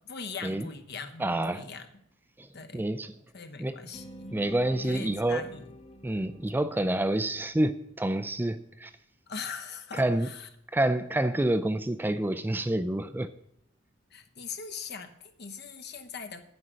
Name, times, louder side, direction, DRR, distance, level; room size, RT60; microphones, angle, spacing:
voice 1, 0.0-1.9 2.5-2.9 3.3-4.4 4.8-5.7 9.3-10.5 14.1-16.5, left 5 dB, 55° left, 8 dB, 1.0 m, -41 dB
voice 2, 1.2-1.6 2.4-2.5 2.7-3.1 3.6-3.7 4.3-5.4 6.0-8.9 9.9-10.3 10.7-13.3, right 1 dB, 10° right, 12 dB, 0.4 m, -28 dB
sound 1, 3.9-8.0, equal, 30° left, 0.9 m, -48 dB
9.6 x 8.0 x 6.3 m, 0.74 s
head